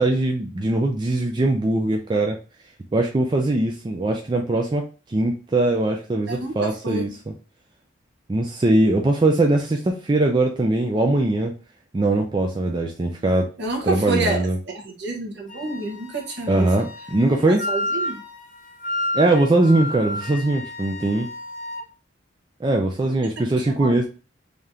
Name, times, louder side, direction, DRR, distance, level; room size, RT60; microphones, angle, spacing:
voice 1, 0.0-2.4 2.9-4.8 5.1-7.3 8.3-11.5 11.9-13.5 13.8-14.6 16.5-17.6 19.1-21.3 22.6-24.0, right 2 dB, 25° right, 2 dB, 0.4 m, -21 dB
voice 2, 6.3-7.1 13.6-14.5 14.7-16.7 17.5-18.2 23.8-24.0, right 2 dB, 60° right, 0 dB, 1.2 m, -28 dB
Wind instrument woodwind instrument, 15.5-21.9, left 1 dB, 40° left, 0.9 m, -31 dB
3.4 x 2.8 x 3.6 m, 0.35 s
head